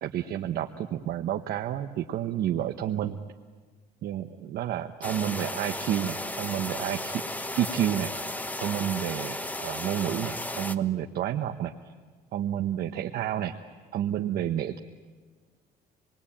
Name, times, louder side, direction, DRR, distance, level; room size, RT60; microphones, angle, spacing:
voice 1, 0.0-3.2 4.0-7.2 7.6-8.1 8.6-11.7 12.3-13.5 13.9-14.8, right 11 dB, 65° right, 4 dB, 1.1 m, -30 dB
sound 1, 5.0-10.8, left 1 dB, 10° left, 1.1 m, -34 dB
28.0 x 21.0 x 8.8 m, 1.5 s
cardioid pair, 110°, 17 cm